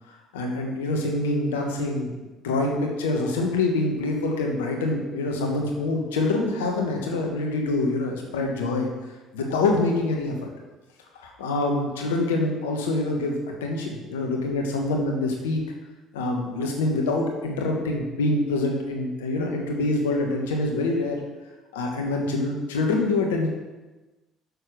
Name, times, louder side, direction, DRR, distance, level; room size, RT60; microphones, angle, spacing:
voice 1, 0.3-2.2 2.4-8.9 9.3-10.5 11.2-15.6 16.1-21.2 21.7-23.5, left 2 dB, 90° left, 1 dB, 1.4 m, -25 dB
6.8 x 6.7 x 6.3 m, 1.2 s
hypercardioid pair, 60°, 0 cm